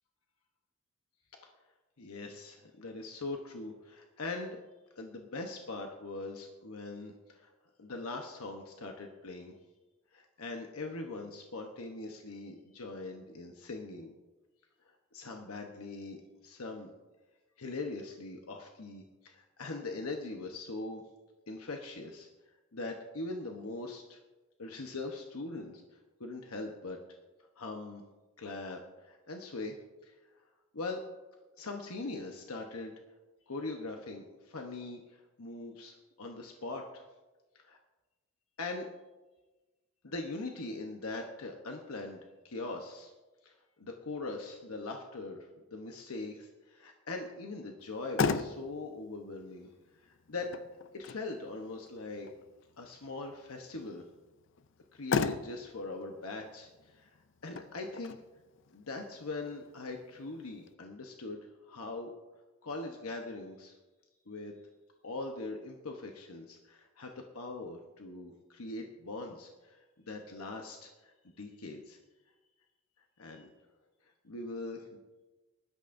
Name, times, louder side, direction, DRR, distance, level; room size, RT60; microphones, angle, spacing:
voice 1, 2.0-4.6 5.0-7.5 7.8-9.5 10.1-14.1 15.1-16.9 17.6-21.0 21.5-22.3 22.7-24.2 24.6-25.8 26.2-27.0 27.6-28.0 28.4-28.8 29.0-29.8 30.0-30.1 30.7-31.0 31.6-32.9 33.5-35.0 35.4-37.0 37.6-37.8 38.6-38.9 40.0-42.2 42.4-43.1 43.4-45.5 45.7-49.7 50.0-50.5 50.9-52.3 52.8-54.1 54.9-57.2 57.4-58.2 58.7-61.4 61.7-62.1 62.6-63.7 64.3-64.5 65.0-72.0 73.2-73.5 74.2-74.9, left 3 dB, 85° left, 3 dB, 1.0 m, -41 dB
Motor vehicle (road), 47.8-60.7, left 5 dB, 60° left, 0.5 m, -39 dB
19.5 x 12.0 x 2.6 m, 1.2 s
head